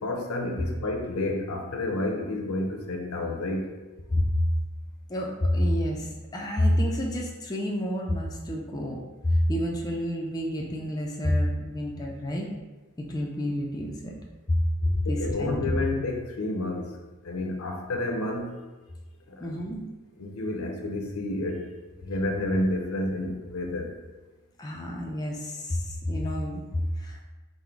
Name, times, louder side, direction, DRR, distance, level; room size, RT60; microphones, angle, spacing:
voice 1, 0.0-3.7 15.1-16.8 17.3-18.5 20.2-21.6 22.0-23.9, left 2 dB, 70° left, 3 dB, 0.6 m, -30 dB
voice 2, 4.1-4.4 5.1-12.5 13.0-14.2 14.5-14.6 14.9-15.8 19.4-19.8 24.6-27.2, left 1 dB, 15° left, -1 dB, 0.4 m, -28 dB
3.8 x 2.1 x 4.4 m, 1.2 s
head